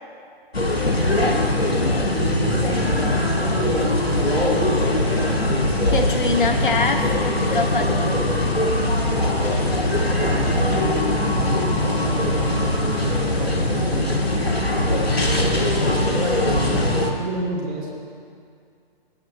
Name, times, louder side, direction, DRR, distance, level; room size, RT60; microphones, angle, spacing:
sound 1, 0.5-17.1, left 1 dB, 85° left, 1.1 m, -21 dB
voice 1, 2.1-5.4 5.8-6.7 7.8-8.2 9.5-14.1 15.0-17.9, right 2 dB, 25° right, -4 dB, 1.6 m, -31 dB
voice 2, 5.9-8.4, left 3 dB, 55° left, 6 dB, 0.9 m, -24 dB
17.5 x 7.7 x 2.7 m, 2.3 s
figure-of-eight pair, 130°, 30 cm